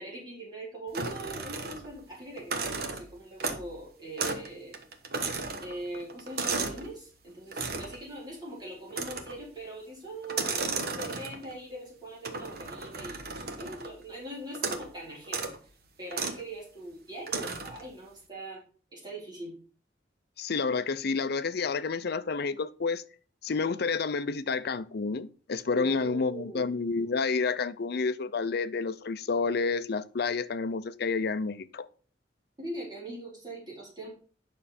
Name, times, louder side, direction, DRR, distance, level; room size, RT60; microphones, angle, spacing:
voice 1, 0.0-4.8 5.6-10.7 10.9-15.5 16.0-18.6 18.9-19.5 25.7-26.6 32.6-34.1, right 1 dB, 25° right, 4.2 m, -41 dB
sound 1, 0.9-2.0 2.4-3.8 4.2-4.5 4.7-6.9 7.5-8.0 8.9-9.5 10.2-11.5 12.2-14.0 14.5-14.9 15.2-15.6 16.1-16.4 17.3-17.8, right 4 dB, 60° right, 1.2 m, -34 dB
voice 2, 20.4-23.0 23.4-31.9, left 4 dB, 60° left, 0.6 m, -29 dB
9.1 x 6.2 x 4.2 m
head